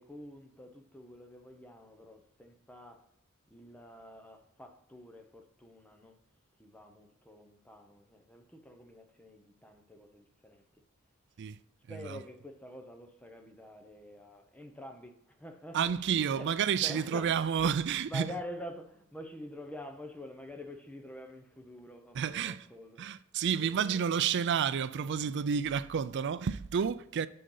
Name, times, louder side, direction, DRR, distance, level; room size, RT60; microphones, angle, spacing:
voice 1, 0.0-3.1 3.5-6.2 6.6-10.7 11.9-16.6 16.8-17.7 18.1-23.0 23.6-24.3, equal, 5° left, 0.8 m, -47 dB
voice 2, 11.9-12.2 15.7-18.4 22.1-22.7 23.0-27.3, right 7 dB, 55° right, 0.4 m, -30 dB
7.6 x 6.5 x 3.9 m
head